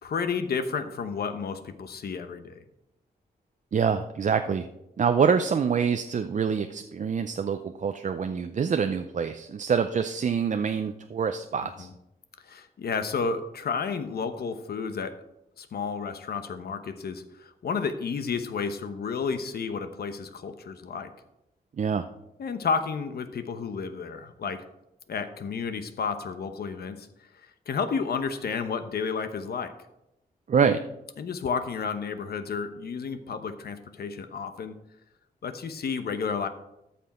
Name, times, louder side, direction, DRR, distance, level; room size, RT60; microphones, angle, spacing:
voice 1, 0.0-2.6 11.8-11.9 12.4-15.2 15.6-21.1 22.4-24.6 25.1-29.7 31.2-34.8 35.4-36.5, left 5 dB, 70° left, 9 dB, 1.0 m, -31 dB
voice 2, 3.7-4.7 5.0-11.9 21.8-22.0 30.5-30.8, right 6 dB, 50° right, 7 dB, 0.5 m, -25 dB
13.5 x 6.0 x 4.3 m, 0.87 s
cardioid pair, 90°, 17 cm